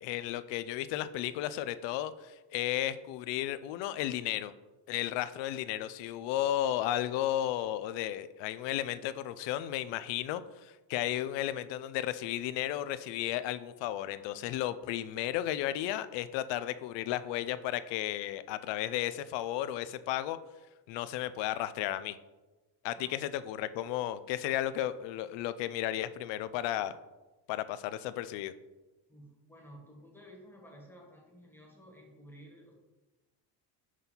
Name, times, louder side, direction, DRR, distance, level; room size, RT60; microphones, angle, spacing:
voice 1, 0.0-4.5 4.9-20.4 20.9-22.2 22.8-27.0 27.5-28.5, left 13 dB, 75° left, 14 dB, 0.6 m, -34 dB
voice 2, 29.1-32.7, equal, 5° left, -1 dB, 1.3 m, -53 dB
6.3 x 5.5 x 3.9 m, 1.1 s
cardioid pair, 150°, 44 cm